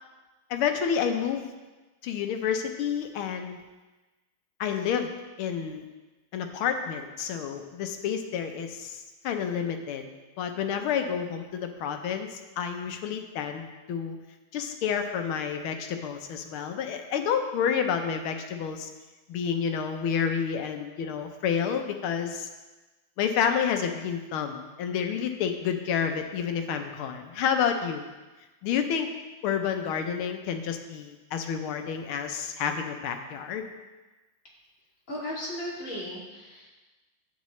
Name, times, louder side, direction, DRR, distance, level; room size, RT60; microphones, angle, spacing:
voice 1, 0.5-1.5 2.0-3.6 4.6-5.1 5.4-5.8 6.3-10.1 10.4-14.2 14.5-18.9 19.3-22.5 23.2-28.0 28.6-29.1 29.4-33.7, left 7 dB, 85° left, 6 dB, 1.7 m, -29 dB
voice 2, 35.1-36.7, left 1 dB, 40° left, -7 dB, 3.0 m, -36 dB
12.0 x 8.3 x 3.2 m, 1.2 s
omnidirectional pair, 2.3 m